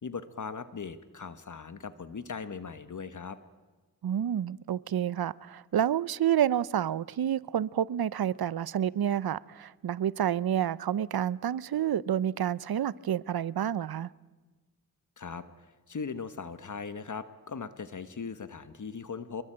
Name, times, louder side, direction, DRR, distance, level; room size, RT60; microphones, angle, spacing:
voice 1, 0.0-3.4 15.2-19.4, left 5 dB, 50° left, 1.3 m, -39 dB
voice 2, 4.0-14.1, right 10 dB, 75° right, 0.7 m, -29 dB
27.0 x 22.0 x 9.0 m
wide cardioid pair, 95°, 37 cm